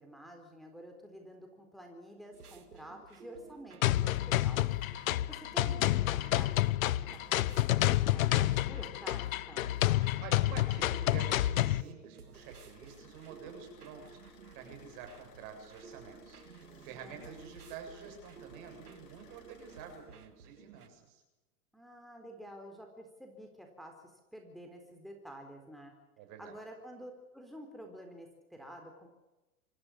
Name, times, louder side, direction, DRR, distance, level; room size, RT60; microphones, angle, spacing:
voice 1, 0.0-4.7 5.3-9.7 17.0-17.5 21.7-25.9 26.4-29.1, equal, ahead, 2 dB, 4.0 m, -50 dB
sound 1, 2.3-20.9, right 6 dB, 85° right, 2.1 m, -55 dB
sound 2, 3.8-11.8, left 15 dB, 65° left, 0.9 m, -29 dB
voice 2, 10.2-21.2 26.2-26.6, right 7 dB, 50° right, 4 dB, 7.5 m, -48 dB
sound 3, 12.3-20.0, left 5 dB, 45° left, 5.1 m, -60 dB
26.0 x 15.0 x 8.7 m, 1.0 s
hypercardioid pair, 100°, 44 cm